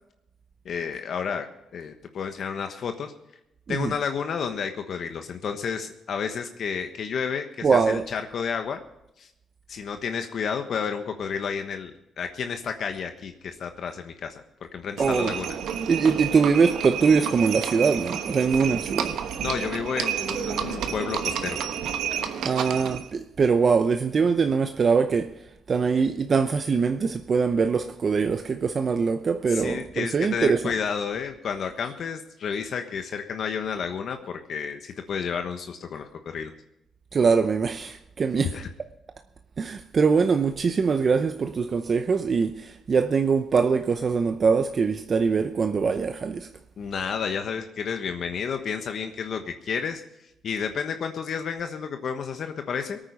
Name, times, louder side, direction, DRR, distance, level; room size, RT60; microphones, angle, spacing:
voice 1, 0.6-1.5 1.7-3.1 3.7-8.8 9.2-9.3 9.7-14.4 14.7-15.6 19.4-21.6 29.5-36.5 38.5-38.7 46.8-50.0 50.4-53.0, left 6 dB, 60° left, 1.2 m, -31 dB
voice 2, 7.6-8.0 15.0-15.3 15.9-19.1 22.4-25.3 25.7-30.6 37.1-38.5 39.6-46.5, right 5 dB, 45° right, 0.7 m, -23 dB
Livestock farm animals working animals, 15.0-23.1, right 8 dB, 80° right, 1.1 m, -30 dB
19.0 x 9.1 x 5.3 m
cardioid pair, 90°, 0 cm